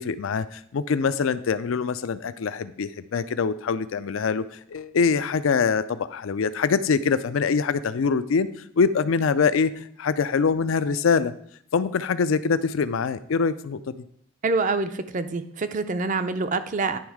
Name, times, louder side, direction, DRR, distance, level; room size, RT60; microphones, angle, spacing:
voice 1, 0.0-8.5 8.8-9.7 10.0-11.3 11.7-13.9, left 5 dB, 80° left, 14 dB, 0.4 m, -24 dB
voice 2, 14.4-17.0, right 3 dB, 40° right, 11 dB, 0.4 m, -26 dB
10.5 x 3.5 x 4.7 m, 0.65 s
head